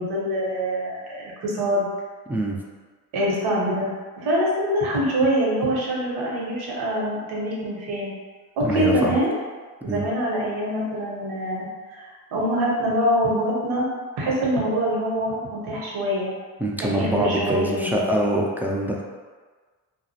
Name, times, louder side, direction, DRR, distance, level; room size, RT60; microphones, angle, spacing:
voice 1, 0.0-1.9 3.1-8.1 8.6-9.3 9.8-11.7 11.9-13.9 14.1-16.3 16.8-18.1, equal, 80° right, -5 dB, 0.9 m, -24 dB
voice 2, 8.6-9.1 9.8-10.0 16.6-19.0, right 1 dB, 5° right, -3 dB, 0.3 m, -24 dB
2.3 x 2.0 x 2.7 m, 1.5 s
supercardioid pair, 70°, 38 cm